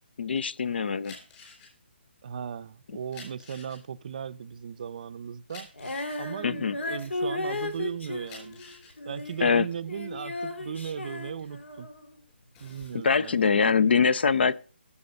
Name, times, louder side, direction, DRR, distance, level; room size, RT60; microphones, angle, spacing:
voice 1, 0.2-1.2 6.4-6.8 9.4-9.7 13.0-14.5, left 5 dB, 65° left, 0.6 m, -23 dB
sound 1, 1.0-7.6 8.0-11.9 12.3-13.0, left 4 dB, 20° left, 4.2 m, -50 dB
voice 2, 2.2-5.7 6.2-8.6 9.1-11.9 12.6-13.8, right 7 dB, 45° right, 0.5 m, -37 dB
Female singing, 5.7-12.1 12.8-12.9, left 2 dB, 80° left, 2.4 m, -35 dB
15.5 x 7.1 x 5.3 m
hypercardioid pair, 165°, 6 cm